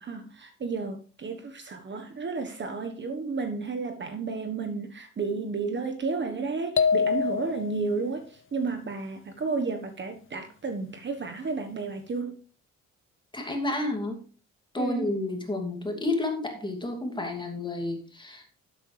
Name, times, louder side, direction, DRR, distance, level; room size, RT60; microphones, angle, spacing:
voice 1, 0.0-12.4 14.8-15.1, right 4 dB, 40° right, 1.3 m, -32 dB
sound 1, 6.8-8.0, left 6 dB, 45° left, 0.8 m, -25 dB
voice 2, 13.3-14.2 14.7-18.6, left 2 dB, 15° left, 2.6 m, -31 dB
11.5 x 8.3 x 3.3 m
cardioid pair, 90°, 30 cm